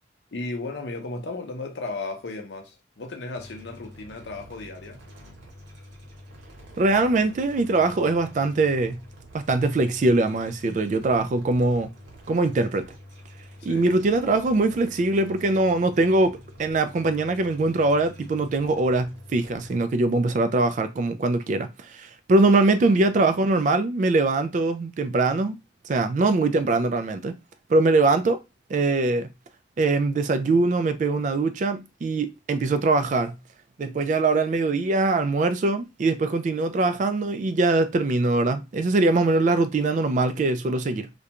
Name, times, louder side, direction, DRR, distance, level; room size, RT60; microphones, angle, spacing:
voice 1, 0.3-5.0 13.6-13.9 22.7-23.0, left 3 dB, 75° left, 0.6 m, -35 dB
sound 1, 3.3-19.8, equal, 85° right, 1.0 m, -47 dB
voice 2, 6.8-9.0 9.3-11.9 12.3-12.9 13.6-25.6 25.8-27.4 27.7-28.4 28.7-29.3 29.8-33.4 33.8-41.1, right 2 dB, 45° right, 0.3 m, -22 dB
2.3 x 2.2 x 2.9 m
head